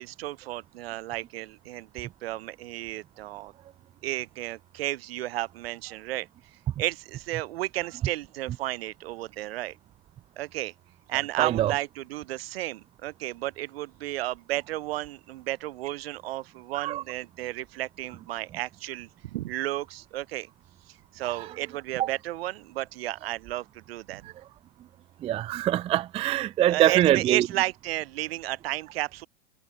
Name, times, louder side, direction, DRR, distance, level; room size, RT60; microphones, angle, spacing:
voice 1, 0.0-3.5 4.0-6.3 6.8-9.8 10.4-10.7 11.1-20.5 20.9-24.3 26.7-29.3, right 16 dB, 70° right, 2.0 m, -33 dB
voice 2, 11.4-11.7 16.8-17.0 22.0-22.1 25.2-27.4, right 13 dB, 20° right, 0.4 m, -23 dB
hypercardioid pair, 100°, 31 cm